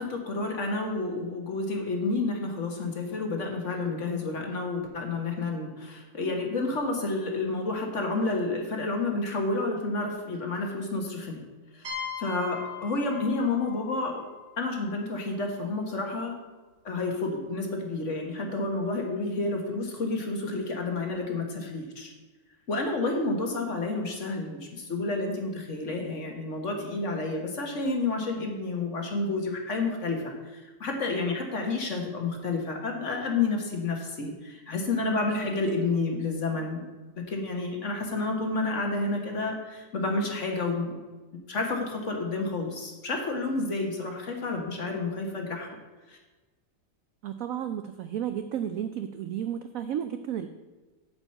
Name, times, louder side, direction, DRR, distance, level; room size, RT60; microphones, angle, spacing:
voice 1, 0.0-11.4 11.7-11.9 12.2-14.2 14.6-16.4 16.8-22.1 22.7-36.8 37.1-41.0 41.5-45.7 46.1-46.2, left 3 dB, 45° left, 2 dB, 1.6 m, -30 dB
sound 1, 11.8-15.5, left 6 dB, 60° right, 2.5 m, -41 dB
voice 2, 47.2-50.5, right 10 dB, 85° right, 9 dB, 0.7 m, -32 dB
8.6 x 5.1 x 7.6 m, 1.2 s
omnidirectional pair, 2.0 m